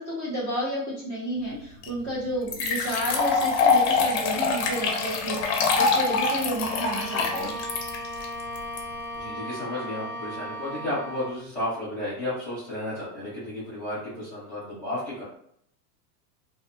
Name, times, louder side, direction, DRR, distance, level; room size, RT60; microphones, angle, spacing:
voice 1, 0.0-7.5, equal, 20° right, -8 dB, 0.3 m, -31 dB
sound 1, 1.8-1.9 2.5-8.8, left 4 dB, 40° left, 0.5 m, -24 dB
Bowed string instrument, 6.6-11.5, equal, 70° right, 0.8 m, -36 dB
voice 2, 9.1-15.2, left 1 dB, 5° left, -11 dB, 0.7 m, -33 dB
2.6 x 2.0 x 2.6 m, 0.68 s
supercardioid pair, 150°, 50 cm